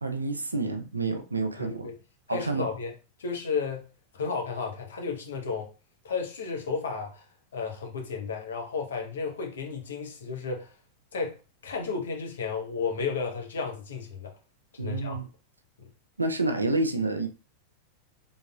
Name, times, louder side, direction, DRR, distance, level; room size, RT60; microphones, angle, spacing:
voice 1, 0.0-1.9 2.3-2.7 14.8-15.3 16.2-17.3, right 2 dB, 80° right, 0.5 m, -29 dB
voice 2, 1.6-1.9 2.3-2.9 3.2-3.9 4.1-5.7 6.0-7.2 7.5-10.7 11.1-11.3 11.6-14.3 14.7-15.2 15.8-15.9, left 5 dB, 65° left, 1.0 m, -33 dB
4.0 x 3.5 x 2.3 m
figure-of-eight pair, 90°, 0 cm